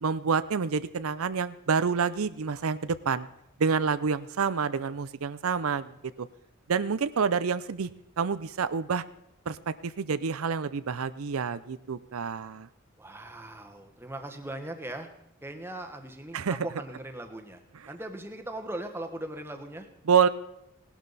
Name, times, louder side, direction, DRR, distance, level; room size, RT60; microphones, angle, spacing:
voice 1, 0.0-3.3 3.6-6.3 6.7-7.9 8.2-9.0 9.5-12.7 16.3-16.6 20.1-20.3, right 6 dB, 90° right, 14 dB, 0.6 m, -28 dB
voice 2, 13.0-15.1 15.4-17.6 17.9-19.9, right 1 dB, 10° right, 5 dB, 1.3 m, -39 dB
18.0 x 12.0 x 4.1 m, 0.82 s
head